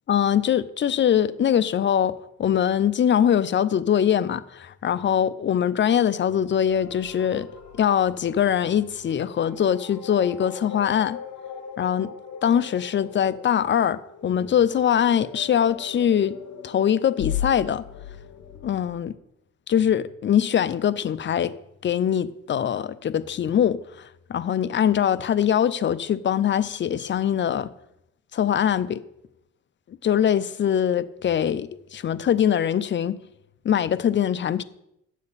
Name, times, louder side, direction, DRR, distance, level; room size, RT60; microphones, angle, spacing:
voice 1, 0.1-7.5 7.8-11.2 11.8-12.1 12.4-16.3 16.6-17.8 18.6-19.1 19.7-21.5 21.8-23.8 24.3-27.7 28.3-29.0 30.0-33.2 33.6-34.6, left 9 dB, 40° left, 0.5 m, -22 dB
sound 1, 6.7-19.0, left 8 dB, 70° left, 1.4 m, -38 dB
10.5 x 7.2 x 4.1 m
cardioid pair, 90°, 30 cm